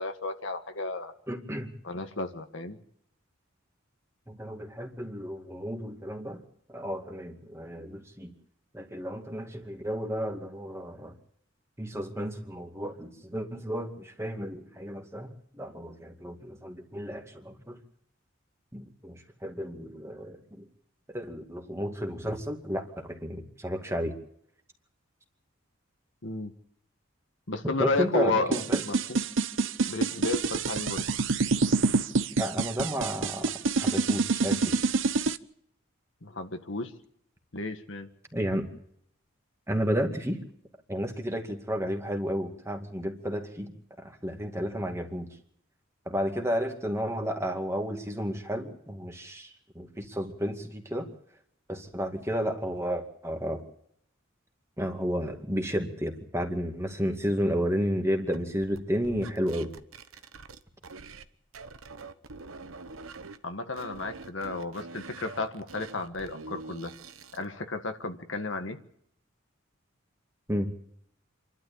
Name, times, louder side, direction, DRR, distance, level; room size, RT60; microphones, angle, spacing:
voice 1, 0.0-1.1 1.8-2.8 26.2-26.5 27.5-29.2 29.9-31.1 36.2-36.9 37.5-38.1 63.4-66.9 67.3-68.8, left 2 dB, 65° left, 7 dB, 1.6 m, -32 dB
voice 2, 1.3-1.7 4.3-6.4 6.7-8.3 8.7-11.2 11.8-15.3 15.5-17.8 18.7-20.7 21.1-24.1 27.8-28.8 32.4-34.8 38.3-38.6 39.7-40.4 40.9-45.3 46.1-51.1 51.7-53.6 54.8-59.7 70.5-70.7, equal, 15° right, 4 dB, 2.3 m, -32 dB
sound 1, 28.5-35.4, right 4 dB, 65° right, 0.8 m, -26 dB
sound 2, 58.3-61.3 61.5-63.4 63.7-67.4, right 3 dB, 85° right, 1.1 m, -45 dB
27.5 x 12.5 x 8.7 m, 0.70 s
head